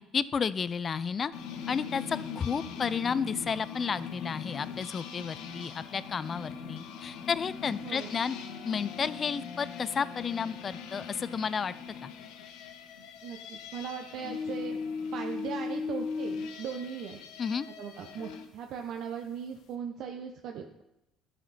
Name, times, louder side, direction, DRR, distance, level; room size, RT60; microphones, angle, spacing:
voice 1, 0.1-1.3 1.7-8.4 8.6-11.7 12.0-12.1 17.4-17.7, left 6 dB, 35° left, 17 dB, 0.4 m, -32 dB
sound 1, 1.3-18.5, left 5 dB, 80° left, 1.1 m, -40 dB
voice 2, 13.2-14.8 15.1-17.2 17.8-20.8, right 7 dB, 65° right, 3 dB, 0.7 m, -39 dB
12.0 x 5.8 x 4.2 m, 0.90 s
cardioid pair, 100°, 0 cm